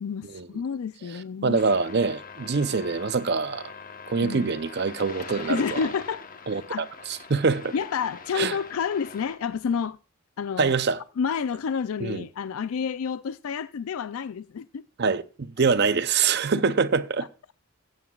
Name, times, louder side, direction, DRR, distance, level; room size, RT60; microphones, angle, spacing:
voice 1, 0.0-1.6 4.2-4.5 5.5-6.2 6.5-6.9 7.7-10.0 10.4-10.7 11.2-14.8, left 6 dB, 70° left, 0.4 m, -29 dB
voice 2, 1.4-3.7 4.1-5.8 6.5-7.7 8.4-8.6 10.6-11.0 12.0-12.2 15.0-17.3, right 5 dB, 50° right, 0.6 m, -25 dB
sound 1, 1.5-9.4, left 5 dB, 40° left, 1.0 m, -42 dB
17.0 x 8.9 x 2.3 m
head